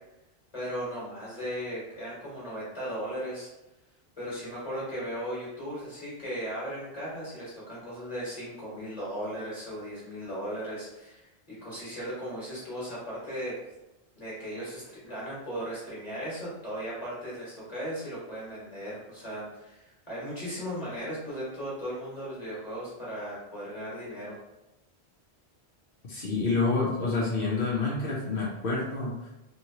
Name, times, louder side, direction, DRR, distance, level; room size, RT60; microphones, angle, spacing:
voice 1, 0.5-3.5 4.2-13.6 14.1-24.4, equal, 40° left, -8 dB, 1.3 m, -37 dB
voice 2, 26.1-29.3, left 3 dB, 60° left, -5 dB, 0.9 m, -28 dB
2.9 x 2.9 x 2.8 m, 0.96 s
omnidirectional pair, 1.1 m